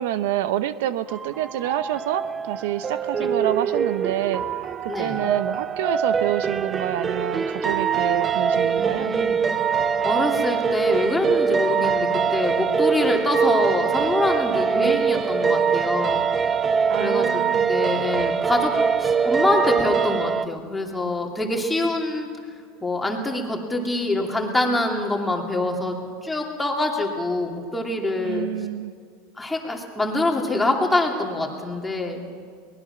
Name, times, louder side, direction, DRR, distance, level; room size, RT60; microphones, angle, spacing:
voice 1, 0.0-4.4 5.0-9.1 14.8-15.2 16.9-17.7 28.2-28.9, right 12 dB, 75° right, 13 dB, 0.7 m, -27 dB
sound 1, 1.1-20.4, right 6 dB, 20° right, 0.5 m, -23 dB
voice 2, 4.9-5.3 8.7-9.4 10.0-16.2 17.0-17.4 17.7-18.7 19.0-22.3 22.8-25.9 26.2-28.5 29.4-32.2, left 2 dB, 5° left, 0 dB, 2.8 m, -25 dB
23.0 x 19.5 x 5.9 m, 2.1 s
supercardioid pair, 135°, 0 cm